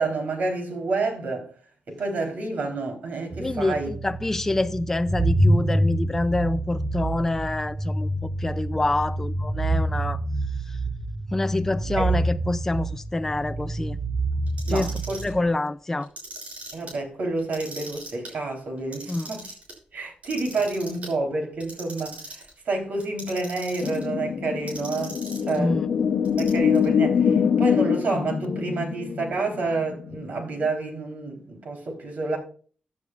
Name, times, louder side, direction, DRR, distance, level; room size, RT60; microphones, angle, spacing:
voice 1, 0.0-1.5 1.9-3.9 12.0-12.2 14.7-15.2 16.7-19.4 19.9-25.8 26.4-32.4, right 3 dB, 70° right, 3.5 m, -29 dB
sound 1, 3.3-15.4, right 1 dB, 15° right, 0.7 m, -27 dB
voice 2, 3.4-10.2 10.7-10.8 11.3-14.0 14.7-14.9 15.2-16.1 19.1-19.3 25.5-25.8, left 2 dB, 15° left, 0.4 m, -26 dB
Clock, 14.5-15.3 16.0-16.9 17.4-18.3 18.8-19.7 20.2-21.1 21.6-22.5 23.0-24.0 24.7-25.6 26.2-26.9, right 2 dB, 55° right, 6.2 m, -40 dB
sound 2, 23.8-30.7, left 7 dB, 75° left, 0.9 m, -24 dB
15.5 x 9.5 x 2.4 m
wide cardioid pair, 165°, 3 cm